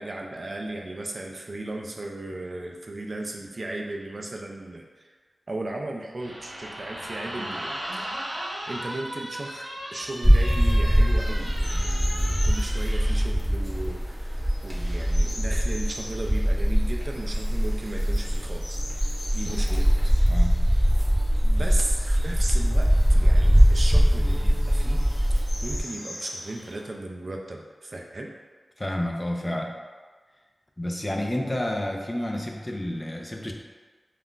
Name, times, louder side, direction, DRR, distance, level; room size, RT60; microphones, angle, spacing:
voice 1, 0.0-5.1 5.5-8.1 8.7-19.9 21.4-25.1 25.6-28.3, right 2 dB, 55° right, 0 dB, 0.3 m, -36 dB
sound 1, 6.2-13.3, equal, 85° right, 0.7 m, -36 dB
sound 2, 10.0-26.8, left 1 dB, 85° left, 0.6 m, -43 dB
sound 3, 10.2-25.8, equal, 10° right, 0.8 m, -22 dB
voice 2, 19.6-19.9 20.3-20.7 28.8-29.8 30.8-33.5, left 1 dB, 25° left, 1 dB, 0.4 m, -30 dB
2.4 x 2.2 x 3.6 m, 1.4 s
cardioid pair, 45°, 0 cm